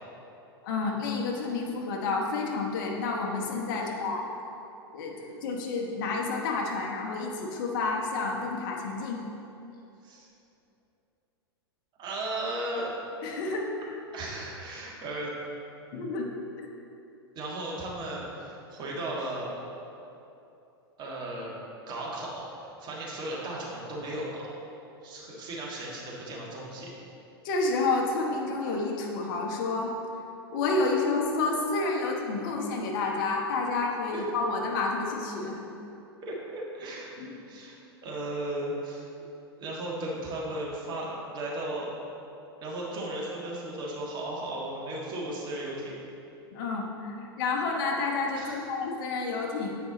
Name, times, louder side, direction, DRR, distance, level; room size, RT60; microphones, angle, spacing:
voice 1, 0.6-4.2 4.9-9.2 13.2-13.7 15.9-16.3 27.4-29.9 30.5-35.6 37.2-37.4 46.5-49.8, left 3 dB, 50° left, 0 dB, 1.0 m, -29 dB
voice 2, 12.0-12.9 14.1-15.3 17.4-19.5 21.0-21.5 21.9-24.5 25.0-26.9 34.1-34.2 36.2-37.1 37.5-37.7 38.0-39.1 39.6-41.9 42.6-46.0 48.3-48.6, right 1 dB, 35° right, -4 dB, 1.8 m, -35 dB
8.3 x 5.1 x 4.0 m, 2.8 s
figure-of-eight pair, 100°, 13 cm